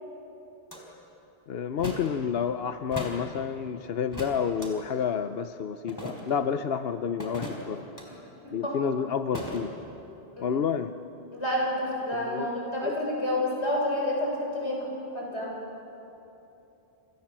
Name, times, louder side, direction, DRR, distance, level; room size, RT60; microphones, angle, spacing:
sound 1, 0.7-0.8 1.8-2.1 2.9-3.2 4.1-4.7 5.9-6.4 7.2-8.0 9.3-9.6, equal, 15° left, 4.2 m, -37 dB
voice 1, 1.5-7.8 8.5-9.7 10.4-10.9 12.3-12.5 12.8-12.9, left 7 dB, 65° left, 10 dB, 1.0 m, -29 dB
voice 2, 8.4-8.8 10.4-10.6 11.3-15.6, left 1 dB, 85° left, -2 dB, 7.0 m, -29 dB
30.0 x 26.5 x 7.5 m, 3.0 s
omnidirectional pair, 1.1 m